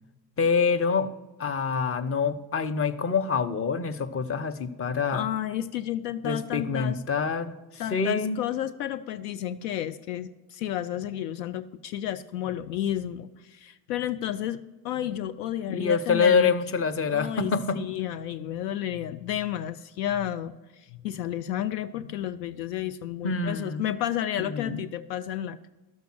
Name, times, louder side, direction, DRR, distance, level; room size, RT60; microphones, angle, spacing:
voice 1, 0.4-1.1 1.4-5.3 6.2-8.4 15.7-17.8 23.2-23.9 24.4-24.8, left 5 dB, 25° left, 10 dB, 0.8 m, -26 dB
voice 2, 5.1-7.0 7.8-16.5 17.1-25.7, left 11 dB, 75° left, 13 dB, 0.6 m, -31 dB
12.0 x 6.9 x 6.2 m, 1.1 s
hypercardioid pair, 55°, 49 cm